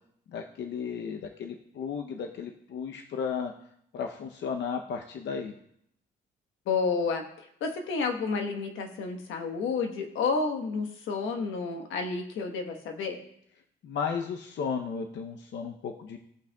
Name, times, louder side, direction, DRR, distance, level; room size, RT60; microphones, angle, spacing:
voice 1, 0.3-3.5 3.9-5.5 13.8-16.2, left 6 dB, 65° left, 4 dB, 0.7 m, -34 dB
voice 2, 6.7-13.2, left 4 dB, 85° left, 4 dB, 1.3 m, -30 dB
17.0 x 5.8 x 2.3 m, 0.72 s
cardioid pair, 90°, 20 cm